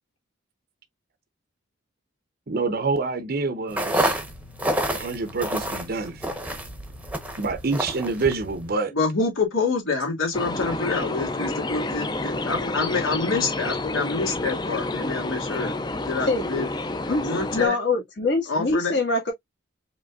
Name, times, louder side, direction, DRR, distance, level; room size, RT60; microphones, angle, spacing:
voice 1, 2.5-4.2 4.9-6.2 7.4-8.9, right 3 dB, 45° right, 0.6 m, -27 dB
sound 1, 3.7-8.7, right 1 dB, 5° right, 0.8 m, -29 dB
voice 2, 8.9-15.7 16.1-16.7 17.1-17.8 18.5-19.0, left 4 dB, 80° left, 2.2 m, -26 dB
sound 2, 10.3-17.7, left 2 dB, 20° left, 0.4 m, -29 dB
voice 3, 17.5-19.3, left 3 dB, 55° left, 1.7 m, -24 dB
5.1 x 3.1 x 2.3 m
head